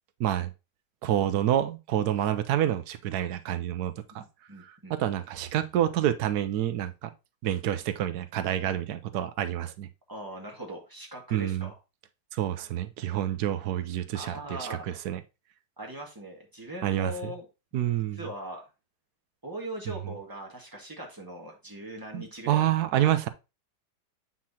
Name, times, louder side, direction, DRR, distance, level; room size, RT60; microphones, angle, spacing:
voice 1, 0.2-0.5 1.0-4.2 4.9-7.1 7.4-9.9 11.3-11.7 12.3-15.2 16.8-17.3 17.7-18.2 19.9-20.0 22.1-23.3, right 11 dB, 70° right, 1.2 m, -28 dB
voice 2, 4.1-4.9 10.1-11.7 14.1-15.0 15.8-17.5 18.1-18.7 19.4-22.7 23.0-23.1, right 1 dB, 15° right, 1.6 m, -40 dB
7.4 x 5.8 x 2.8 m
omnidirectional pair, 1.8 m